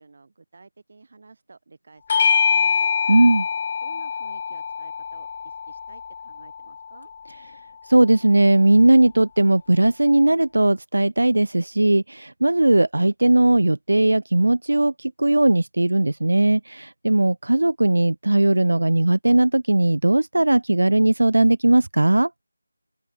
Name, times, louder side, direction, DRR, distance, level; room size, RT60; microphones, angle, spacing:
voice 1, 0.0-2.9 3.8-7.1, right 3 dB, 40° right, 4.9 m, -50 dB
Bell / Doorbell, 2.1-6.9, left 6 dB, 20° left, 0.5 m, -24 dB
voice 2, 3.1-3.5 7.9-22.3, right 2 dB, 80° right, 0.4 m, -18 dB
open air
figure-of-eight pair, 175°, 0 cm